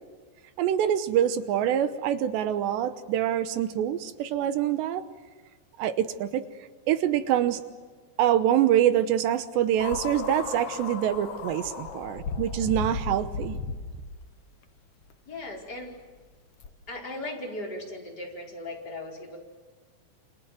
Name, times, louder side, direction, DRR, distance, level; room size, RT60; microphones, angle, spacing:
voice 1, 0.6-5.0 5.8-6.5 6.9-7.6 8.2-13.6, right 11 dB, 75° right, 11 dB, 3.1 m, -25 dB
sound 1, 9.8-14.3 15.1-15.2 16.6-16.7, left 4 dB, 70° left, 1.4 m, -35 dB
voice 2, 15.2-15.9 16.9-19.4, left 1 dB, 20° left, 0 dB, 4.9 m, -37 dB
29.0 x 27.0 x 7.7 m, 1.4 s
omnidirectional pair, 5.2 m